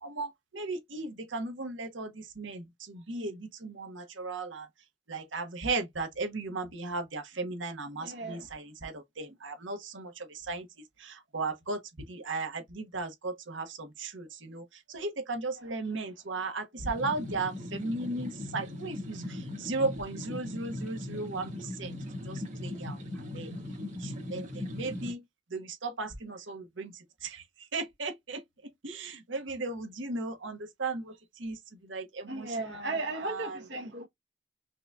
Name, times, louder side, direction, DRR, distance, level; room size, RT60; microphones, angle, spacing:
voice 1, 0.0-4.7 5.1-10.7 11.0-11.8 12.1-14.6 14.9-21.9 22.3-23.0 23.3-23.5 24.0-25.2 25.5-26.9 27.2-27.4 27.7-28.4 28.8-31.1 31.4-31.6 31.8-33.0 33.2-33.5, right 3 dB, 80° right, 1.2 m, -36 dB
voice 2, 8.0-8.5 15.5-16.1 32.3-34.1, right 2 dB, 65° right, 1.0 m, -37 dB
sound 1, 16.8-25.1, left 1 dB, 40° right, 1.9 m, -39 dB
5.6 x 2.7 x 2.3 m
head